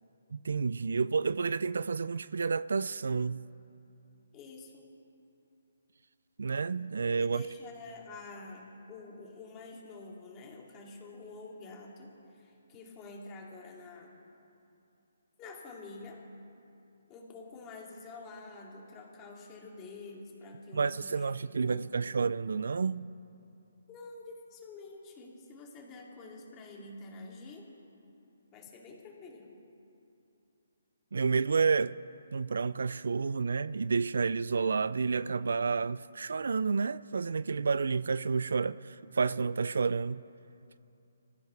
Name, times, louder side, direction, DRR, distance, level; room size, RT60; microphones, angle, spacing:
voice 1, 0.3-3.4 6.4-7.4 20.7-23.1 31.1-32.0 32.3-40.2, right 5 dB, 75° right, 0.3 m, -30 dB
voice 2, 4.3-4.9 7.2-14.2 15.4-16.2 17.1-22.3 23.9-27.7 28.5-29.5, left 3 dB, 20° left, 2.4 m, -48 dB
26.0 x 15.0 x 3.3 m
hypercardioid pair, 155°, 0 cm